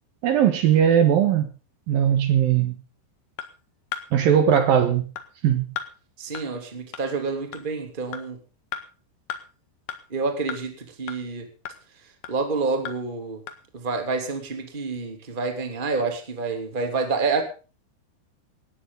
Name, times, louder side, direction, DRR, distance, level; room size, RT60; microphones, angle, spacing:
voice 1, 0.2-1.5 1.9-2.8 4.1-5.1 5.4-5.7, right 9 dB, 65° right, 9 dB, 2.7 m, -19 dB
sound 1, 3.4-3.5 3.9-4.0 4.6-4.7 5.2-5.3 5.8-5.9 6.3-6.4 6.9-7.0 7.5-7.6 8.1-8.2 8.7-8.8 9.3-9.4 9.9-10.0 10.5-10.6 11.1-11.2 11.6-11.8 12.2-12.3 12.8-12.9 13.5-13.6, left 9 dB, 60° left, 2.7 m, -33 dB
voice 2, 6.2-8.4 10.1-11.5 12.3-13.4 13.7-17.4, right 4 dB, 15° right, 5 dB, 2.5 m, -28 dB
18.5 x 14.5 x 4.0 m, 0.35 s
omnidirectional pair, 5.2 m